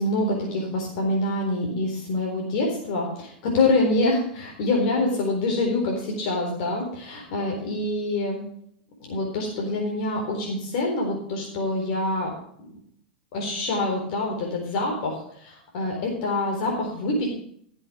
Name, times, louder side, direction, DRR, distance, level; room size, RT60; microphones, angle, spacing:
voice 1, 0.0-8.4 9.1-12.3 13.3-17.3, left 2 dB, 60° left, 0 dB, 4.1 m, -26 dB
15.0 x 7.7 x 5.0 m, 0.66 s
hypercardioid pair, 115°, 5 cm